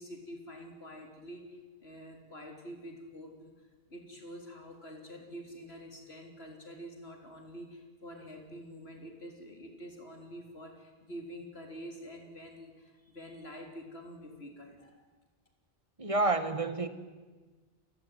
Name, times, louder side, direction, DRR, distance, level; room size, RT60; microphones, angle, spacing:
voice 1, 0.0-15.1, equal, 75° left, 3.9 m, -47 dB
voice 2, 16.0-16.9, right 2 dB, 30° right, 1.7 m, -29 dB
29.0 x 16.5 x 9.4 m
omnidirectional pair, 1.1 m